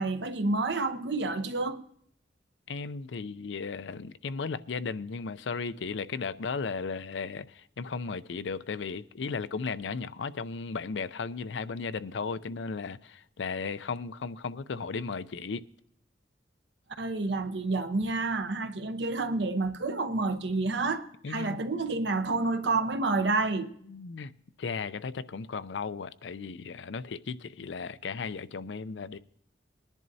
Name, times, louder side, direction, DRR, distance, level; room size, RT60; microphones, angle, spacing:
voice 1, 0.0-1.8 17.0-23.7, right 3 dB, 70° right, 0.9 m, -29 dB
voice 2, 2.7-15.7 21.2-21.6 23.9-24.3 24.6-29.2, left 5 dB, 80° left, 0.5 m, -35 dB
21.0 x 10.5 x 2.7 m
head